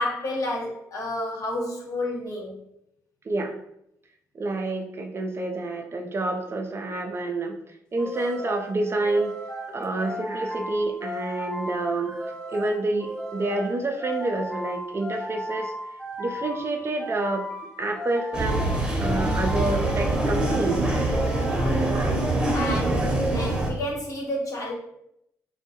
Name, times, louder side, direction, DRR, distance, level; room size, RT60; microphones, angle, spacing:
voice 1, 0.0-2.6 9.9-10.2 11.8-11.9 21.3-21.8 22.5-24.7, left 1 dB, 50° left, -2 dB, 0.8 m, -31 dB
voice 2, 4.3-7.6 7.9-9.3 9.7-15.7 16.2-17.5 17.8-18.7 19.0-20.9 21.7-22.1 23.0-23.1, right 2 dB, 35° right, 4 dB, 0.4 m, -28 dB
sound 1, 8.0-22.5, equal, 15° left, 0.7 m, -35 dB
sound 2, 18.3-23.7, right 1 dB, 10° right, 0.8 m, -24 dB
2.2 x 2.2 x 2.8 m, 0.80 s
supercardioid pair, 55°, 7 cm